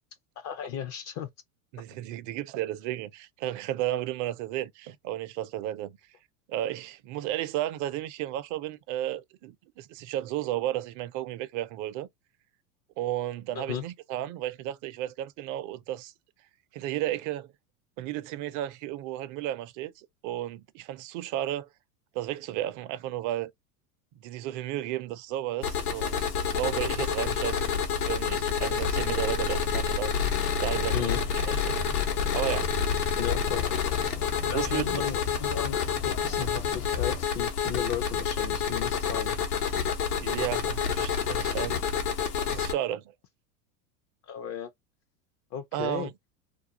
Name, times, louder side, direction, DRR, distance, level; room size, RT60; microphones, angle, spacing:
voice 1, 0.4-1.3 13.6-13.8 30.9-31.2 33.2-33.7 34.5-35.8 36.0-39.4 44.3-44.7 45.5-46.1, left 9 dB, 35° left, 0.4 m, -35 dB
voice 2, 1.7-6.0 6.5-12.1 13.0-16.1 16.7-17.5 18.0-21.7 22.1-23.5 24.2-27.7 28.1-30.2 30.6-31.7 32.3-32.7 34.5-35.0 40.1-41.8 42.5-43.0 45.7-46.1, right 13 dB, 45° right, 0.5 m, -33 dB
sound 1, 25.6-42.7, left 6 dB, 90° left, 0.9 m, -28 dB
sound 2, 30.2-37.3, left 9 dB, 70° left, 1.1 m, -38 dB
2.4 x 2.3 x 2.6 m
hypercardioid pair, 100°, 44 cm